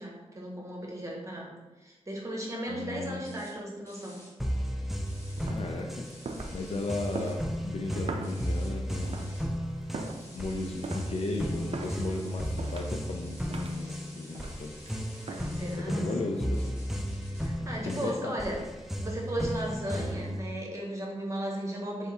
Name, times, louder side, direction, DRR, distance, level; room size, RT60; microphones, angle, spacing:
voice 1, 0.0-1.5 1.8-4.2 15.3-16.1 17.4-18.6 19.0-22.1, right 1 dB, 25° right, -2 dB, 1.2 m, -36 dB
voice 2, 2.7-3.2 5.4-6.1 6.5-9.3 10.3-14.7 15.7-16.7 17.6-18.4 19.9-20.1, left 3 dB, 60° left, 1 dB, 0.5 m, -36 dB
sound 1, 3.2-3.5 3.9-4.3 5.1-5.5 6.0-7.4 8.2-9.5 10.0-15.8 16.5-17.5 17.9-18.1, left 1 dB, 20° left, 1.4 m, -52 dB
sound 2, 4.4-20.4, equal, ahead, 0.5 m, -34 dB
sound 3, 5.1-15.7, right 3 dB, 55° right, 0.5 m, -42 dB
3.5 x 3.4 x 4.2 m, 1.2 s
wide cardioid pair, 70°, 12 cm